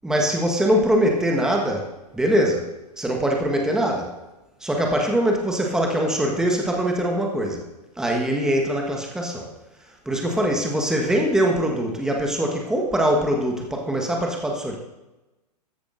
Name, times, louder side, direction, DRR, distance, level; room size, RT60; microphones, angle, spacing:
voice 1, 0.0-1.9 2.1-4.2 4.6-7.7 8.0-9.5 10.0-14.8, equal, 5° right, 0 dB, 1.3 m, -22 dB
14.0 x 10.0 x 2.6 m, 1.0 s
figure-of-eight pair, 110°, 21 cm